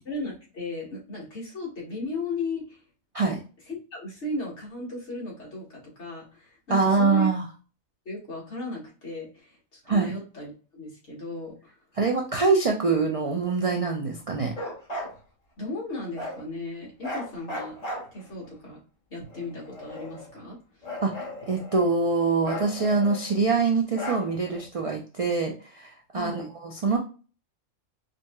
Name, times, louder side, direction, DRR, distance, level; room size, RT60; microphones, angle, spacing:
voice 1, 0.1-2.8 3.7-7.3 8.1-11.8 15.6-17.8 18.1-18.8 19.1-20.9 26.1-26.5, left 2 dB, 55° left, -4 dB, 2.0 m, -36 dB
voice 2, 6.7-7.4 9.9-10.1 12.0-14.5 21.0-27.0, right 4 dB, 65° right, 1 dB, 0.3 m, -24 dB
Bark, 14.5-15.1 16.1-16.4 17.0-18.5 19.3-20.4 20.8-22.0 22.4-23.4 23.9-24.6, left 1 dB, 30° left, 1.4 m, -37 dB
5.0 x 2.6 x 2.2 m, 0.36 s
omnidirectional pair, 1.4 m